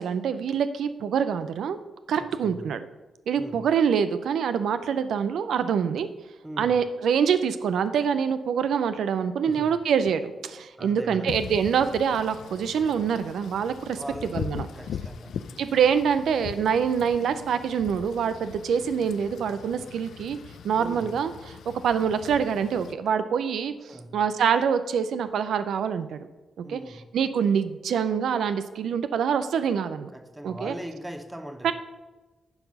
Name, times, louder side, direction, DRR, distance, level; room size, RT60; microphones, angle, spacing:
voice 1, 0.0-1.8 2.1-2.9 3.3-6.1 6.6-14.0 14.3-14.7 15.6-20.4 20.6-21.6 21.8-26.2 26.6-26.8 27.1-30.1 30.4-30.7 31.6-31.7, right 7 dB, 85° right, 11 dB, 0.4 m, -25 dB
voice 2, 3.4-3.7 6.4-6.8 9.4-9.8 10.8-11.4 13.9-15.5 20.8-21.1 23.9-24.2 26.6-27.1 30.1-31.7, right 1 dB, 10° right, 7 dB, 0.9 m, -40 dB
Wind / Rain, 11.3-22.9, left 7 dB, 80° left, 0.4 m, -40 dB
9.6 x 4.7 x 5.4 m, 1.2 s
cardioid pair, 100°, 0 cm